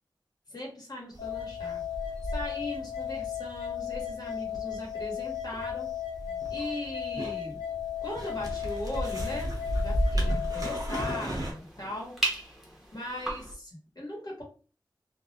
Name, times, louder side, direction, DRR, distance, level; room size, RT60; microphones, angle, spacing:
voice 1, 0.5-1.8 2.3-5.9 6.3-7.6 8.0-12.1 12.9-14.4, left 1 dB, 50° left, -3 dB, 1.1 m, -39 dB
sound 1, 1.1-11.5, equal, 45° right, 0.8 m, -34 dB
sound 2, 1.2-11.2, left 10 dB, 90° left, 1.2 m, -36 dB
sound 3, 8.1-13.5, right 1 dB, ahead, 0.8 m, -39 dB
2.4 x 2.1 x 2.7 m, 0.39 s
wide cardioid pair, 70°, 8 cm